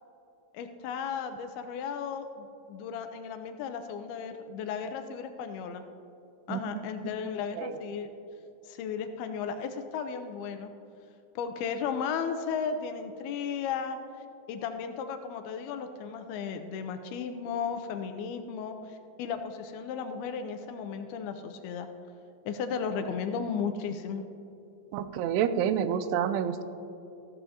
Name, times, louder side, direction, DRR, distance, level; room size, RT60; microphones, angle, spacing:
voice 1, 0.5-5.8 6.5-8.1 8.6-10.7 11.4-14.0 14.5-21.9 22.5-24.2, left 6 dB, 80° left, 8 dB, 2.4 m, -35 dB
voice 2, 6.5-6.8 7.6-7.8 24.9-26.6, right 8 dB, 90° right, 11 dB, 2.7 m, -28 dB
14.5 x 13.0 x 2.8 m, 2.8 s
omnidirectional pair, 4.7 m